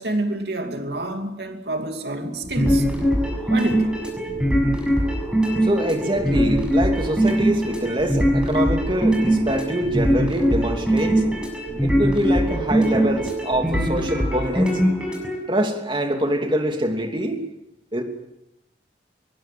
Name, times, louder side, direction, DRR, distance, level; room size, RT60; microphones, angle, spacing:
voice 1, 0.0-2.9 3.5-3.9, right 1 dB, 65° right, 5 dB, 2.7 m, -27 dB
sound 1, 2.4-15.3, equal, 5° right, 6.5 m, -21 dB
voice 2, 5.6-11.2 11.8-14.8 15.5-17.4 17.9-18.0, right 1 dB, 25° right, 4 dB, 3.0 m, -24 dB
25.0 x 22.0 x 7.7 m, 0.85 s
head